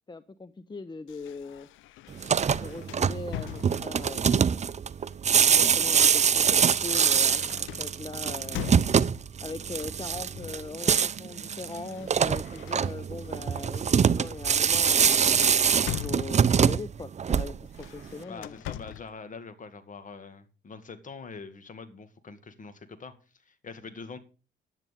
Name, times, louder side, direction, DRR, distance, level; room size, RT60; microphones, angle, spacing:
voice 1, 0.1-1.7 2.6-4.7 5.4-8.8 9.4-15.3 15.9-18.6, left 3 dB, 20° left, 0.7 m, -40 dB
sound 1, 1.1-4.2 5.1-9.3 10.3-10.7 11.0-13.3 13.8-14.0 14.4-16.8 17.7-19.2, left 15 dB, 85° left, 0.5 m, -42 dB
sound 2, 2.1-17.8, right 7 dB, 35° right, 0.6 m, -24 dB
voice 2, 18.2-23.1 23.5-24.2, left 4 dB, 40° left, 2.1 m, -44 dB
10.5 x 9.9 x 5.3 m
cardioid pair, 90°, 20 cm